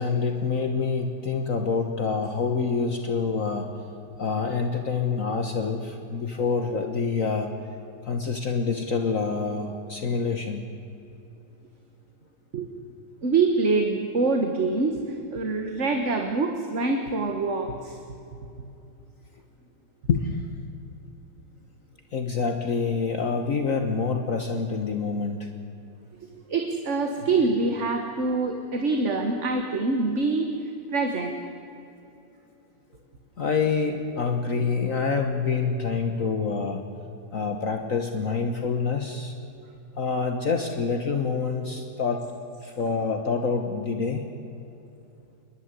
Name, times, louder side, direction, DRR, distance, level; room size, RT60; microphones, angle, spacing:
voice 1, 0.0-3.7 4.2-7.5 8.0-10.7 20.1-20.4 22.1-25.5 33.4-36.8 37.3-39.3 40.0-42.2 42.6-44.3, left 5 dB, 50° left, 5 dB, 1.5 m, -26 dB
voice 2, 13.2-18.0 26.3-30.5 30.9-31.3, right 3 dB, 45° right, 4 dB, 1.7 m, -25 dB
28.0 x 11.5 x 9.7 m, 2.8 s
omnidirectional pair, 1.9 m